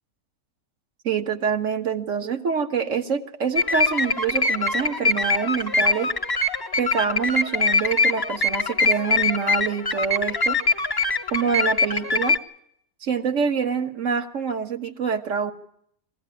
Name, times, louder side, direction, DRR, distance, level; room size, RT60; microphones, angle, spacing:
voice 1, 1.0-6.1 6.8-10.6 11.3-12.4 13.0-15.5, right 6 dB, 55° right, 7 dB, 1.6 m, -26 dB
sound 1, 3.6-12.4, left 3 dB, 20° left, 0.8 m, -23 dB
21.5 x 16.0 x 9.7 m, 0.70 s
omnidirectional pair, 1.6 m